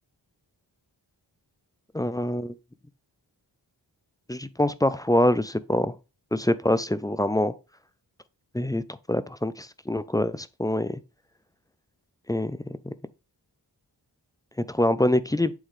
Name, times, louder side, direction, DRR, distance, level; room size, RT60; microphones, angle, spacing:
voice 1, 1.9-2.5 4.3-6.0 6.3-7.5 8.5-8.8 9.1-11.0 12.3-12.9 14.7-15.5, left 1 dB, 10° left, 0.3 m, -25 dB
9.0 x 3.7 x 3.2 m
wide cardioid pair, 70°, 43 cm